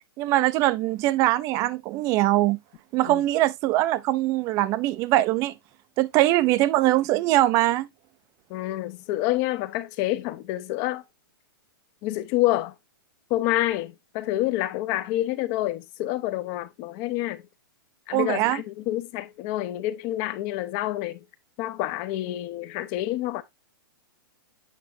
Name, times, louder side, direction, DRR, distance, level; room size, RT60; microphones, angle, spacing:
voice 1, 0.2-2.6 2.9-5.5 6.0-7.9 18.1-18.6, right 16 dB, 25° right, 0.4 m, -22 dB
voice 2, 8.5-11.0 12.0-12.7 13.3-17.4 18.1-21.2 21.6-23.4, left 15 dB, 35° left, 0.7 m, -28 dB
8.1 x 5.8 x 2.6 m
hypercardioid pair, 155°, 12 cm